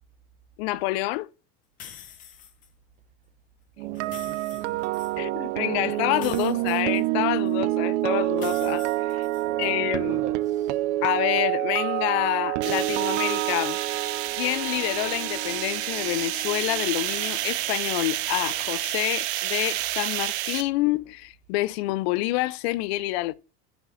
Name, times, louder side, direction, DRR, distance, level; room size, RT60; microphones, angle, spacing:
voice 1, 0.6-1.3 5.2-9.3 9.6-10.2 11.0-23.3, left 18 dB, 65° left, 0.5 m, -28 dB
sound 1, 1.8-2.7 3.9-5.1 6.1-7.5 8.4-9.7, left 9 dB, 25° left, 0.7 m, -45 dB
voice 2, 3.8-6.8 8.7-8.8 9.4-10.8, right 8 dB, 20° right, 0.6 m, -44 dB
sound 2, 3.8-17.8 18.1-18.4, right 16 dB, 90° right, 0.5 m, -28 dB
sound 3, 12.6-20.6, right 15 dB, 70° right, 0.9 m, -30 dB
8.1 x 5.1 x 3.8 m
cardioid pair, 175°, 34 cm